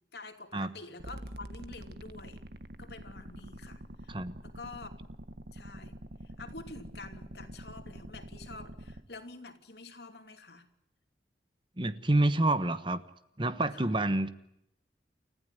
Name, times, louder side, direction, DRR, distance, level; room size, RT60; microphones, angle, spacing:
voice 1, 0.1-2.4 2.8-3.8 4.4-4.9 5.5-6.0 6.4-10.7 13.7-13.9, left 3 dB, 70° left, 7 dB, 2.8 m, -47 dB
sound 1, 1.0-9.0, right 1 dB, 65° right, 1.7 m, -46 dB
voice 2, 11.8-13.0 13.4-14.3, right 2 dB, 30° right, 12 dB, 1.2 m, -28 dB
30.0 x 15.0 x 9.2 m, 0.79 s
head